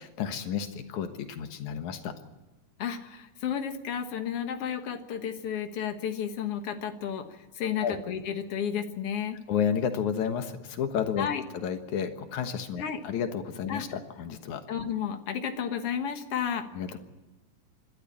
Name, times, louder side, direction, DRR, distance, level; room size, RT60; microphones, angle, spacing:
voice 1, 0.0-2.1 7.8-8.0 9.5-11.3 11.5-14.6 16.7-17.0, left 8 dB, 70° left, 8 dB, 2.7 m, -31 dB
voice 2, 2.8-7.3 7.6-9.4 11.2-11.4 12.8-13.0 13.7-13.8 14.7-16.7, left 8 dB, 55° left, 8 dB, 2.1 m, -32 dB
26.0 x 12.5 x 8.7 m, 1.1 s
omnidirectional pair, 3.5 m